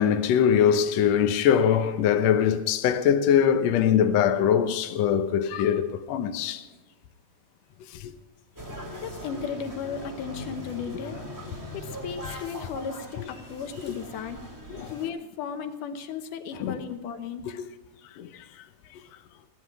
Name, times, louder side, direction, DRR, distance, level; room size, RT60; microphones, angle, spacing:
voice 1, 0.0-6.6 7.9-8.1 14.7-14.9 16.6-16.8 18.2-18.3, left 8 dB, 90° left, 1.5 m, -22 dB
sound 1, 8.6-15.1, equal, 10° right, 1.0 m, -40 dB
voice 2, 8.9-11.2 11.7-14.4 14.9-17.6, left 7 dB, 70° left, 2.3 m, -35 dB
16.0 x 11.5 x 4.8 m
omnidirectional pair, 4.3 m